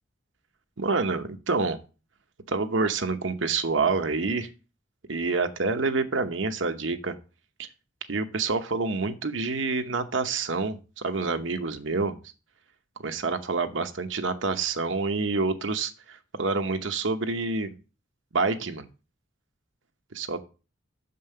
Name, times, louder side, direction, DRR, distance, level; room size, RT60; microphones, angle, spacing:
voice 1, 0.8-1.8 2.5-4.5 5.1-7.1 7.6-7.7 8.1-12.2 13.0-17.7 18.3-18.9 20.1-20.4, right 4 dB, 75° right, 8 dB, 0.9 m, -27 dB
6.6 x 5.4 x 6.6 m, 0.34 s
head